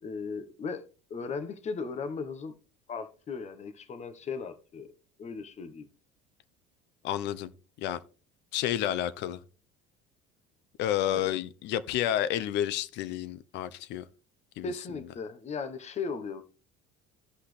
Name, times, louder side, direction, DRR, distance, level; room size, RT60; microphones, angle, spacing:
voice 1, 0.0-2.5 2.9-4.9 5.2-5.9 11.1-11.4 14.6-16.4, left 5 dB, 35° left, 1.2 m, -37 dB
voice 2, 7.0-7.5 7.8-8.0 8.5-9.4 10.8-14.0 14.6-14.7, left 11 dB, 65° left, 0.8 m, -30 dB
15.5 x 5.8 x 3.3 m
supercardioid pair, 110°, 19 cm